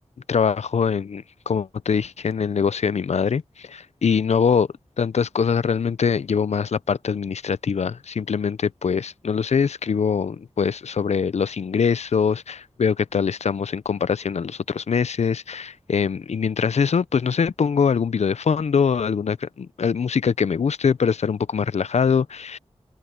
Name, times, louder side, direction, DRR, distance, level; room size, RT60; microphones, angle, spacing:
voice 1, 0.3-4.7 5.0-22.6, left 6 dB, 85° left, 0.5 m, -23 dB
cardioid pair, 45°, 11 cm